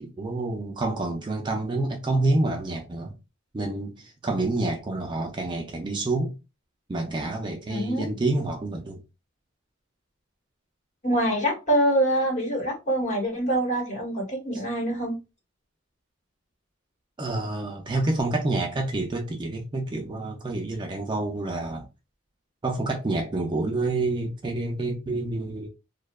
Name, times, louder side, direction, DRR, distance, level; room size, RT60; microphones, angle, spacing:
voice 1, 0.0-3.1 3.5-3.9 4.2-6.3 6.9-9.0 17.2-21.8 22.6-25.7, right 2 dB, 25° right, 0.3 m, -28 dB
voice 2, 7.7-8.1 11.0-15.2, right 1 dB, 35° left, 1.1 m, -25 dB
2.6 x 2.2 x 2.2 m
head